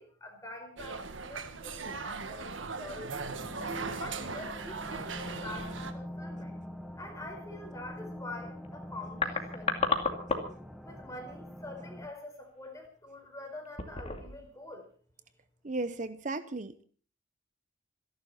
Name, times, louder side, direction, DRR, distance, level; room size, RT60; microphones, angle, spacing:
voice 1, 0.0-3.3 3.9-6.5 7.0-9.8 10.8-14.8, left 2 dB, 15° left, 3 dB, 4.7 m, -45 dB
sound 1, 0.8-5.9, right 4 dB, 75° right, 1.6 m, -39 dB
sound 2, 3.2-12.1, equal, ahead, 1.0 m, -44 dB
sound 3, 3.7-4.0 4.3-4.5 5.2-5.6 8.6-8.7 8.9-10.7 11.0-11.2 11.8-12.1 12.6-12.9 13.6-14.5 14.7-14.8, left 4 dB, 35° left, 2.4 m, -33 dB
voice 2, 15.6-16.8, right 2 dB, 40° right, 12 dB, 0.8 m, -35 dB
26.5 x 11.5 x 4.3 m, 0.42 s
head